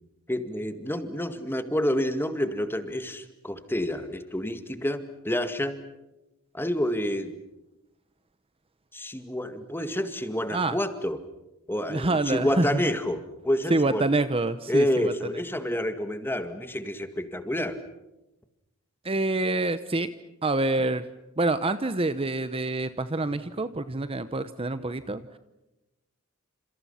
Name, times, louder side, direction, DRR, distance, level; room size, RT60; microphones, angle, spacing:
voice 1, 0.3-5.8 6.5-7.3 8.9-11.2 11.7-14.0 14.7-17.8, left 1 dB, 10° left, 9 dB, 2.0 m, -28 dB
voice 2, 11.9-12.8 13.7-15.4 19.0-20.1 20.4-21.0 21.4-25.4, right 2 dB, 25° right, 12 dB, 0.9 m, -27 dB
30.0 x 28.0 x 5.8 m, 0.95 s
head